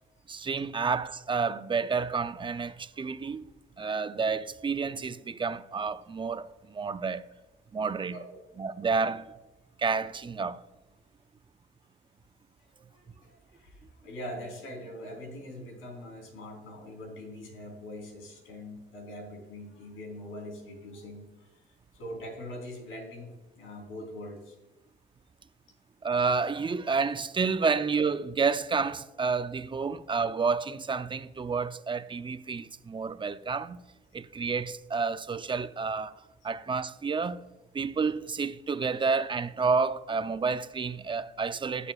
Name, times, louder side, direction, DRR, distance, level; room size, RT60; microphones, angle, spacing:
voice 1, 0.3-3.5 3.8-7.3 7.7-8.2 8.6-9.3 9.8-10.6 26.0-33.8 34.1-37.4 37.7-41.9, right 5 dB, 25° right, 0.5 m, -30 dB
voice 2, 12.6-24.6 29.8-29.9, left 1 dB, 85° left, 3.5 m, -43 dB
15.5 x 6.9 x 2.4 m
cardioid pair, 90°, 20 cm